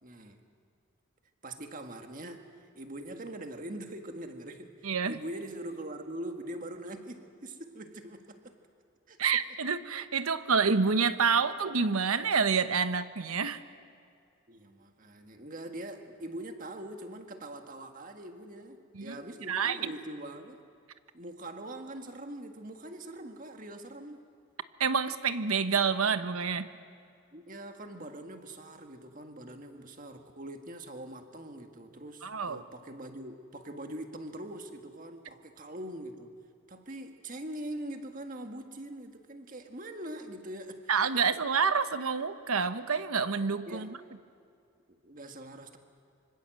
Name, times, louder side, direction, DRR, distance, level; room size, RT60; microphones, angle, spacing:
voice 1, 0.0-0.4 1.4-8.5 9.1-9.2 14.5-20.6 21.1-24.3 27.3-36.3 36.7-41.4 43.7-43.9 44.9-45.8, right 1 dB, 40° right, 5 dB, 1.8 m, -43 dB
voice 2, 4.8-5.2 9.2-13.6 18.9-19.2 19.5-19.9 24.8-26.7 32.2-32.6 40.9-43.9, right 5 dB, 90° right, 11 dB, 1.1 m, -28 dB
25.5 x 25.0 x 7.7 m, 2.4 s
head